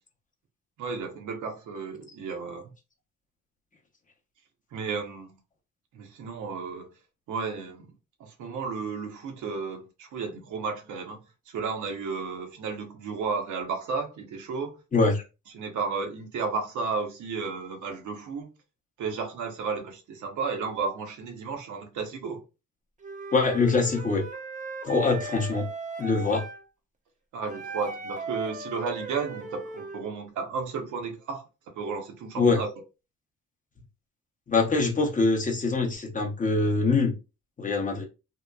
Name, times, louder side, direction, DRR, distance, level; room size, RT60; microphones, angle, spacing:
voice 1, 0.8-2.7 4.7-5.4 5.9-6.9 7.3-7.9 8.2-14.8 15.5-18.5 19.0-22.4 27.3-31.4 31.7-32.7, right 5 dB, 75° right, 0.8 m, -33 dB
voice 2, 14.9-15.2 23.3-24.3 24.8-25.7 26.0-26.4 32.4-32.6 34.5-37.1 37.6-38.0, left 3 dB, 25° left, 0.6 m, -24 dB
Wind instrument woodwind instrument, 23.0-26.6 27.5-30.1, right 3 dB, 25° right, 0.5 m, -38 dB
2.9 x 2.1 x 2.2 m
cardioid pair, 90°, 30 cm